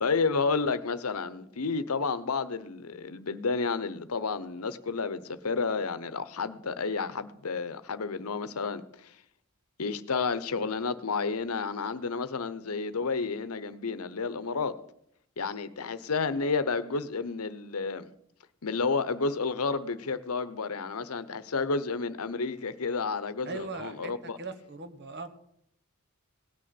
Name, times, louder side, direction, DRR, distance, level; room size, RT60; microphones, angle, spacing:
voice 1, 0.0-9.1 9.8-14.8 15.4-18.1 18.6-24.4, left 4 dB, 90° left, 0.9 m, -31 dB
voice 2, 23.4-25.3, right 3 dB, 50° right, 1.3 m, -40 dB
17.5 x 6.5 x 7.8 m
head